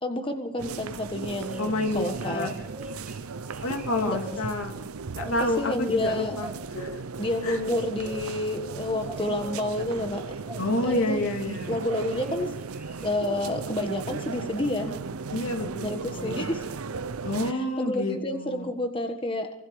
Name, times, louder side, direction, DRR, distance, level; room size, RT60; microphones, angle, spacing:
voice 1, 0.0-2.5 4.0-4.2 5.2-6.4 7.2-10.4 10.8-11.3 11.7-12.5 13.0-14.9 15.8-16.7 17.4-19.5, left 1 dB, 25° left, 5 dB, 1.4 m, -29 dB
sound 1, 0.6-17.5, right 4 dB, 85° right, 0.7 m, -36 dB
sound 2, 1.3-4.4 5.2-5.8 6.4-6.9 7.7-8.2 9.0-9.7 10.5-11.0 11.3-13.1, left 1 dB, 5° right, 4.3 m, -42 dB
voice 2, 1.6-2.5 3.6-4.7 5.1-6.5 6.7-7.0 7.4-7.6 10.6-11.8 14.8-14.9 15.3-16.6 17.2-18.7, left 1 dB, 75° left, 3 dB, 2.8 m, -29 dB
25.0 x 23.5 x 5.0 m, 0.84 s
head